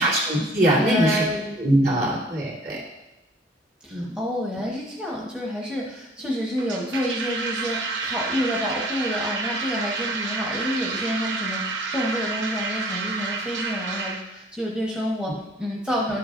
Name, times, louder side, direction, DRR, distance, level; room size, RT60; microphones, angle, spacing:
voice 1, 0.0-1.3 1.6-2.8 3.9-4.1, right 1 dB, 55° right, -6 dB, 2.8 m, -22 dB
voice 2, 0.8-1.6 1.9-2.1 3.8-16.2, equal, 5° right, -4 dB, 1.0 m, -29 dB
sound 1, 6.6-14.2, right 4 dB, 85° right, 0.9 m, -29 dB
11.5 x 7.8 x 2.5 m, 0.95 s
head